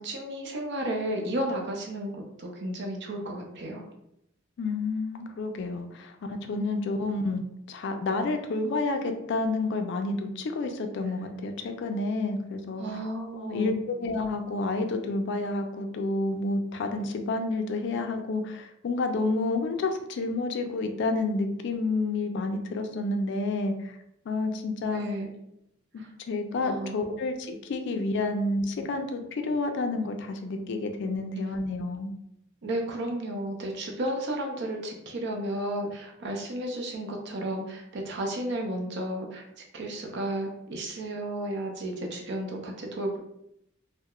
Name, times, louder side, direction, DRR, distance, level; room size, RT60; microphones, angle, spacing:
voice 1, 0.0-3.8 12.8-13.8 24.9-25.3 26.0-26.1 26.6-27.0 32.6-39.5 39.7-43.2, right 1 dB, 60° right, 1 dB, 0.5 m, -33 dB
voice 2, 4.6-7.4 7.7-12.9 13.3-24.0 24.3-25.1 25.9-32.1, left 2 dB, 60° left, 6 dB, 0.3 m, -29 dB
2.3 x 2.0 x 2.9 m, 0.80 s
head